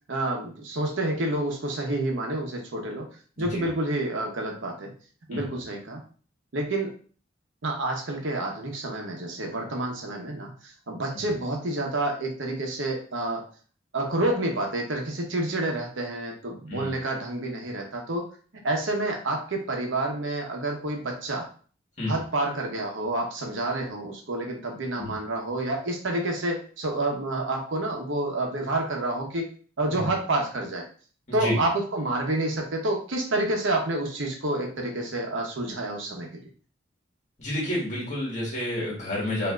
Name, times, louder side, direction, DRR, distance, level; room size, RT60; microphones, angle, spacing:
voice 1, 0.1-3.1 3.4-4.9 5.3-6.0 6.5-6.9 7.6-13.5 13.9-18.3 18.6-21.5 22.1-29.5 29.8-30.9 31.3-36.4, right 2 dB, 90° right, 1 dB, 0.9 m, -29 dB
voice 2, 31.3-31.6 37.4-39.5, left 1 dB, 40° left, -4 dB, 1.6 m, -29 dB
4.6 x 2.7 x 2.4 m, 0.42 s
head